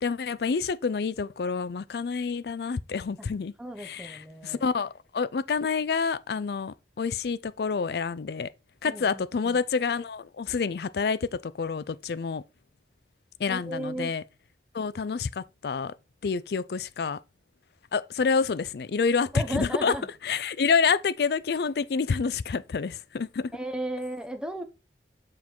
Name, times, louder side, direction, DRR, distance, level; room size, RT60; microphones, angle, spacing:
voice 1, 0.0-8.5 8.8-12.4 13.4-14.2 14.7-16.0 16.2-17.2 17.9-20.0 20.2-23.5, left 5 dB, 65° left, 0.4 m, -28 dB
voice 2, 3.6-4.6 8.9-9.6 13.5-14.1 19.3-20.1 23.5-24.6, right 1 dB, 5° right, 0.7 m, -35 dB
7.3 x 3.9 x 4.4 m
head